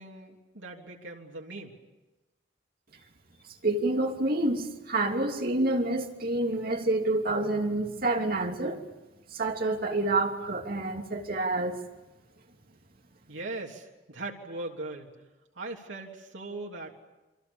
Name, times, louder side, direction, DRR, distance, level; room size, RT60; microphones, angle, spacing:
voice 1, 0.0-1.8 13.3-15.1 15.5-16.9, right 2 dB, 90° right, 0 dB, 3.3 m, -39 dB
voice 2, 3.6-8.8 9.3-11.8, right 2 dB, 50° right, 2 dB, 3.0 m, -28 dB
28.5 x 25.0 x 7.2 m, 1.1 s
head